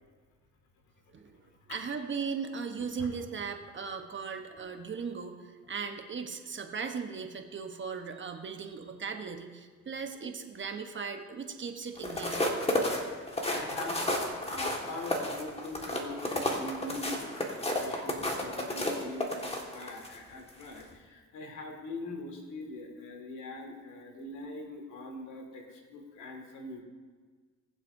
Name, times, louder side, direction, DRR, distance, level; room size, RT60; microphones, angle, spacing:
voice 1, 1.1-1.4 1.7-12.5, right 5 dB, 40° right, 5 dB, 1.1 m, -38 dB
sound 1, 12.0-20.2 20.6-20.8, left 1 dB, 20° left, 1.8 m, -32 dB
voice 2, 13.0-26.8, left 2 dB, 75° left, 2 dB, 2.2 m, -43 dB
21.0 x 7.5 x 2.7 m, 1.5 s
cardioid pair, 90°, 30 cm